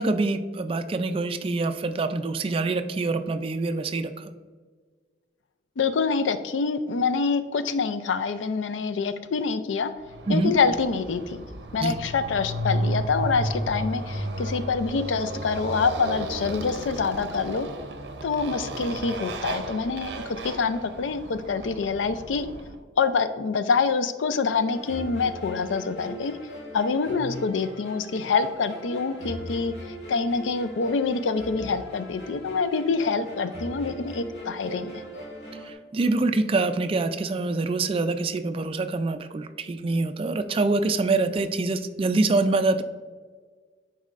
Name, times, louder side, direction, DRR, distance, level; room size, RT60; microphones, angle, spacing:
voice 1, 0.0-4.3 10.3-10.5 11.8-11.9 35.7-42.8, right 3 dB, 30° right, 9 dB, 0.3 m, -25 dB
voice 2, 5.8-9.9 10.3-11.4 11.7-17.7 18.2-22.5 23.0-26.4 26.7-29.7 30.1-35.0, left 5 dB, 90° left, 11 dB, 0.4 m, -26 dB
Motorcycle, 10.0-22.8, right 1 dB, 65° right, 0.6 m, -33 dB
sound 1, 24.7-35.7, equal, 70° left, 1.8 m, -40 dB
10.0 x 4.2 x 2.4 m, 1.5 s
head